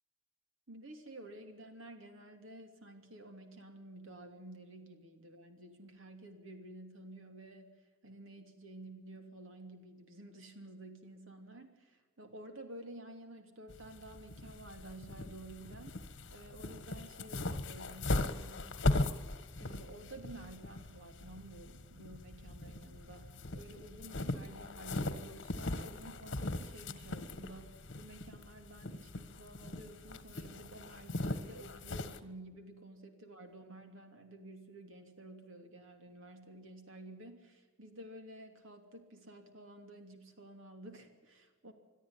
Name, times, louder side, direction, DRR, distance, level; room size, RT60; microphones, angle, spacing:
voice 1, 0.7-18.9 19.6-41.7, right 1 dB, 75° right, 6 dB, 3.0 m, -52 dB
sound 1, 13.7-32.2, left 2 dB, 60° left, 1.4 m, -39 dB
22.0 x 13.0 x 9.7 m, 1.3 s
head